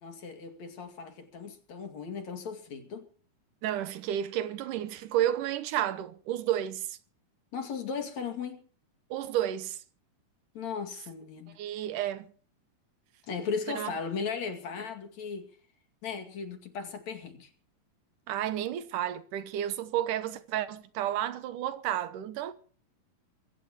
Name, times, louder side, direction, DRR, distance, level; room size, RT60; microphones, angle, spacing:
voice 1, 0.0-3.1 7.5-8.6 10.6-11.6 13.3-15.5 16.0-17.5, left 5 dB, 60° left, 3.5 m, -37 dB
voice 2, 3.6-7.0 9.1-9.8 11.6-12.3 13.7-13.9 18.3-22.5, right 11 dB, 80° right, 2.5 m, -31 dB
24.0 x 15.5 x 3.0 m
omnidirectional pair, 3.8 m